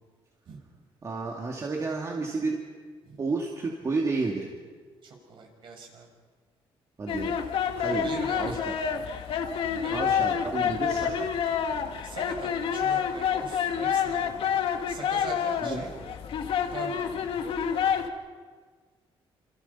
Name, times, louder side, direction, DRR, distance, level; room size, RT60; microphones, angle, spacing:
voice 1, 1.0-2.6 3.2-4.5 7.0-7.3 7.8-8.1 8.4-8.7 9.9-11.3 15.6-15.9, right 3 dB, 30° right, -1 dB, 2.6 m, -31 dB
voice 2, 5.0-6.1 7.9-8.6 9.8-10.2 12.0-16.1 16.7-17.0, right 4 dB, 55° right, 2 dB, 6.7 m, -42 dB
sound 1, 7.1-18.1, left 7 dB, 65° left, 1.9 m, -28 dB
28.5 x 27.5 x 5.7 m, 1.5 s
cardioid pair, 145°, 10 cm